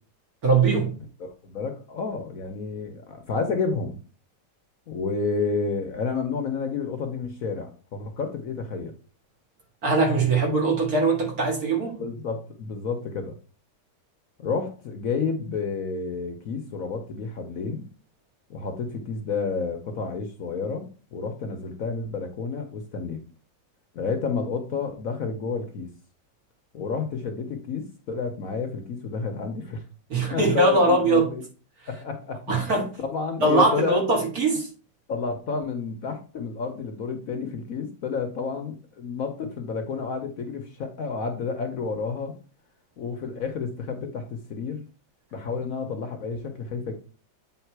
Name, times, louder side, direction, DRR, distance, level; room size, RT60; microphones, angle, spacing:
voice 1, 0.4-0.9 9.8-12.0 30.1-31.3 32.5-32.9 33.4-34.7, right 3 dB, 55° right, 2.5 m, -21 dB
voice 2, 1.2-4.0 4.9-8.9 12.0-13.3 14.4-17.8 18.5-23.2 23.9-25.9 26.7-29.8 30.3-31.4 31.9-34.0 35.1-42.3 43.0-44.8 45.3-46.9, left 5 dB, 60° left, 1.1 m, -30 dB
8.2 x 3.6 x 4.6 m
omnidirectional pair, 1.9 m